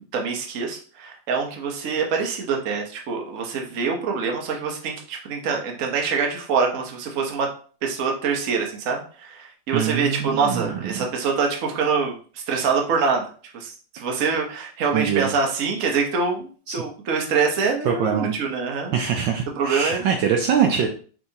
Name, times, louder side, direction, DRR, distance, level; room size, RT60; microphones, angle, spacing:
voice 1, 0.1-7.5 7.8-13.2 13.5-18.9 19.6-20.0, right 5 dB, 50° right, 1 dB, 1.0 m, -25 dB
voice 2, 9.7-11.1 14.9-15.3 16.7-16.8 17.8-18.3 18.9-20.9, right 7 dB, 70° right, 3 dB, 1.2 m, -23 dB
5.8 x 3.4 x 2.7 m, 0.42 s
omnidirectional pair, 2.4 m